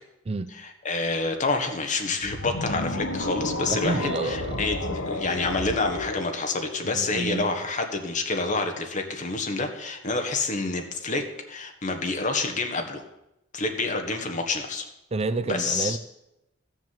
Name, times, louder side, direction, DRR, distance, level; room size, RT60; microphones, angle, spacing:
voice 1, 0.6-13.0 13.5-14.9 15.5-16.0, left 3 dB, 40° left, 1.6 m, -28 dB
sound 1, 2.2-7.5, left 2 dB, 80° left, 1.4 m, -32 dB
voice 2, 3.7-4.8 6.8-7.5 15.1-16.0, right 3 dB, 30° right, 0.5 m, -29 dB
13.5 x 7.3 x 7.6 m
head